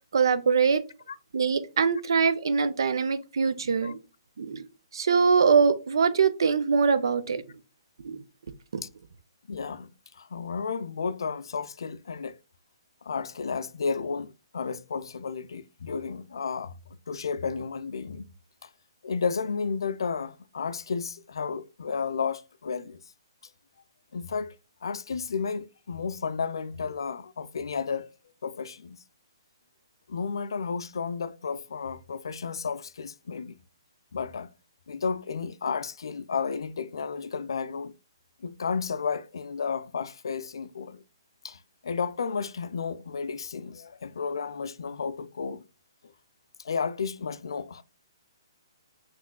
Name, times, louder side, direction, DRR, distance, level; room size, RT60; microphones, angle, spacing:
voice 1, 0.1-0.8 1.3-4.0 4.4-4.6 4.9-7.4 8.0-8.2 8.7-8.8, right 5 dB, 70° right, 0.5 m, -23 dB
voice 2, 9.5-12.4 13.0-16.8 17.1-18.3 18.6-18.7 19.0-23.0 24.1-24.5 24.8-28.1 28.4-29.0 30.1-33.6 34.1-34.5 34.9-37.9 38.4-41.0 41.4-45.6 46.6-47.8, left 5 dB, 70° left, 0.3 m, -32 dB
5.8 x 3.0 x 2.2 m
hypercardioid pair, 135°, 2 cm